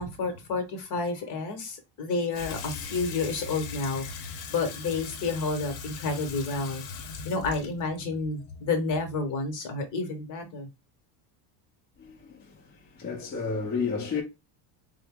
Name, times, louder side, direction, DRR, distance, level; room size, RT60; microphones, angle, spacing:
voice 1, 0.0-6.8 7.2-10.7, left 3 dB, 40° left, 1.0 m, -30 dB
Water tap faucet / Sink (filling or washing), 2.3-9.4, left 5 dB, 65° left, 0.8 m, -40 dB
voice 2, 12.0-12.3 13.0-14.2, left 5 dB, 20° left, 0.7 m, -30 dB
3.8 x 2.0 x 3.6 m
cardioid pair, 165°, 46 cm